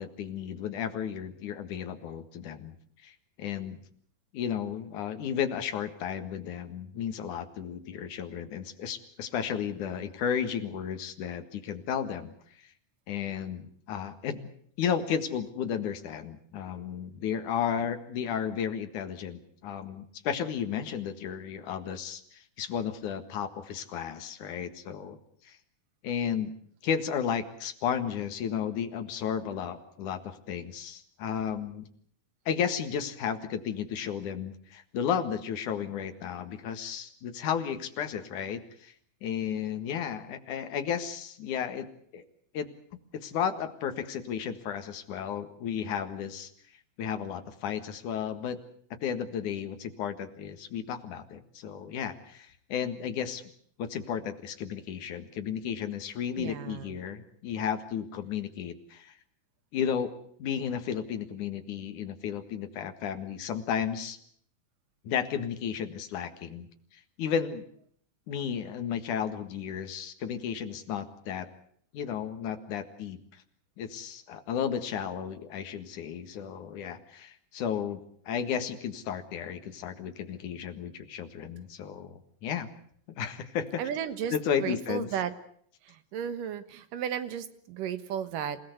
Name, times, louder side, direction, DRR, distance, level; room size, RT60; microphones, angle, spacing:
voice 1, 0.0-2.8 3.0-3.8 4.3-12.3 13.1-14.5 14.8-25.2 25.4-25.6 26.0-26.5 26.8-31.9 32.5-38.9 39.2-41.9 42.1-42.2 42.5-42.7 43.1-46.5 47.0-48.6 49.0-53.4 53.8-59.1 59.7-60.1 60.4-64.2 65.0-66.7 67.2-67.6 68.3-71.5 71.9-73.4 73.8-78.0 78.3-82.7 83.1-83.8 84.3-85.1, left 8 dB, 70° left, 8 dB, 3.1 m, -33 dB
voice 2, 56.4-56.9 83.8-85.3 85.8-88.6, right 9 dB, 85° right, 11 dB, 3.1 m, -34 dB
27.5 x 17.0 x 8.0 m, 0.63 s
omnidirectional pair, 3.7 m